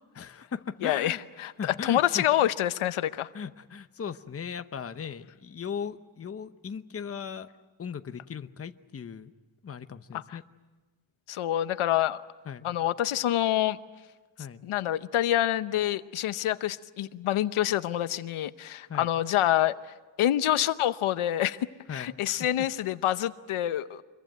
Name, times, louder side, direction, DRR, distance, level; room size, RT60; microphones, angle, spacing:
voice 1, 0.1-1.2 1.6-2.3 3.3-7.5 7.8-9.3 9.6-10.4 12.5-12.7 14.4-14.6 18.9-19.1 21.9-22.4, left 7 dB, 30° left, 9 dB, 0.9 m, -38 dB
voice 2, 0.8-3.3 10.1-10.4 11.3-12.2 12.6-13.8 14.6-19.7 20.2-21.6 21.9-24.0, left 12 dB, 80° left, 13 dB, 0.9 m, -27 dB
26.5 x 22.5 x 9.2 m, 1.2 s
wide cardioid pair, 135°, 49 cm